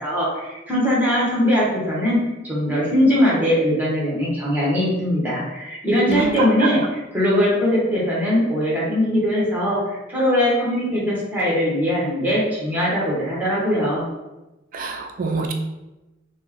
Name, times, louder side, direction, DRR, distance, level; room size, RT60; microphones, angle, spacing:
voice 1, 0.0-9.8 10.1-14.1, equal, 10° right, -6 dB, 1.1 m, -21 dB
voice 2, 6.1-6.7 14.7-15.5, right 4 dB, 45° right, 3 dB, 0.3 m, -25 dB
4.4 x 2.1 x 3.0 m, 1.0 s
head